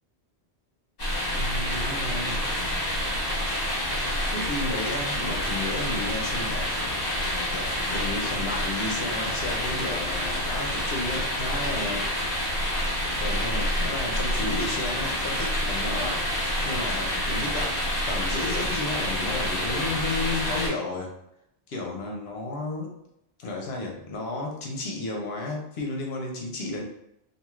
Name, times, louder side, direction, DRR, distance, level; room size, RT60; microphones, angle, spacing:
sound 1, 1.0-20.7, equal, 40° left, 1.1 m, -28 dB
voice 1, 1.3-2.4 4.3-6.7 7.5-12.1 13.2-17.8 18.1-21.1 21.7-23.0 23.4-26.8, left 2 dB, 70° left, 0 dB, 0.9 m, -33 dB
2.5 x 2.3 x 3.0 m, 0.78 s
omnidirectional pair, 1.1 m